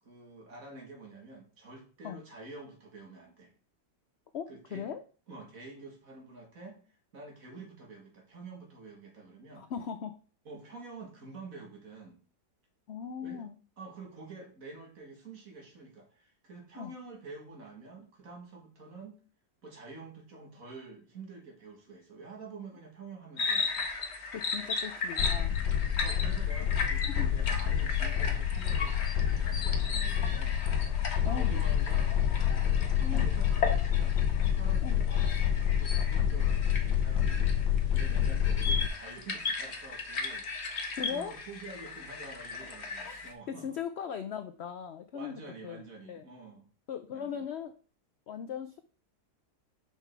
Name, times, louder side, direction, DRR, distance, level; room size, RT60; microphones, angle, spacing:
voice 1, 0.0-3.5 4.5-4.9 5.3-6.8 7.1-9.7 10.5-12.2 13.2-13.4 13.8-19.2 19.6-23.9 26.0-29.0 29.4-30.6 31.2-32.1 32.6-34.2 34.5-43.8 45.1-46.7 47.1-47.5, right 3 dB, 55° right, 1 dB, 2.4 m, -48 dB
voice 2, 4.3-5.0 9.6-10.2 12.9-13.6 16.7-16.9 24.3-25.6 26.8-27.3 31.3-31.6 33.1-33.3 34.8-35.0 41.0-41.3 43.1-43.2 43.5-46.2 46.9-47.8 48.3-48.8, left 7 dB, 70° left, 9 dB, 0.6 m, -39 dB
sound 1, 23.4-43.3, left 4 dB, 45° left, 1.3 m, -37 dB
sound 2, 25.2-38.9, left 9 dB, 90° left, 1.2 m, -28 dB
5.8 x 5.7 x 4.6 m, 0.38 s
omnidirectional pair, 1.7 m